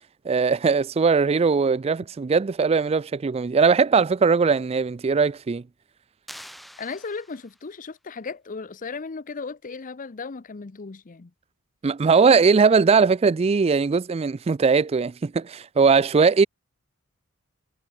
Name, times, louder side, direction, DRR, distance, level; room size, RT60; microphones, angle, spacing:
voice 1, 0.2-5.6 11.8-16.5, right 5 dB, 25° right, 0.3 m, -20 dB
sound 1, 6.3-7.8, equal, ahead, 1.2 m, -45 dB
voice 2, 6.8-11.3, left 4 dB, 35° left, 0.6 m, -36 dB
head